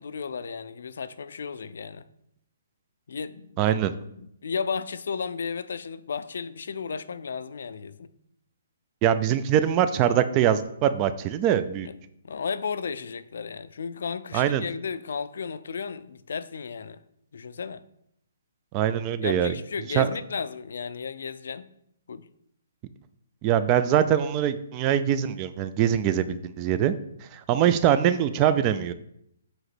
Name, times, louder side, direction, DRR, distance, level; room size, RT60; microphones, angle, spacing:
voice 1, 0.0-2.1 3.1-3.7 4.2-8.1 11.8-11.9 12.2-17.0 17.3-17.8 19.2-21.7 22.1-22.3, left 6 dB, 70° left, 0.4 m, -34 dB
voice 2, 3.6-3.9 9.0-11.9 14.3-14.6 18.7-19.5 19.9-20.1 23.4-26.9 27.3-28.9, right 10 dB, 20° right, 0.3 m, -23 dB
7.8 x 2.9 x 6.0 m
hypercardioid pair, 170°, 0 cm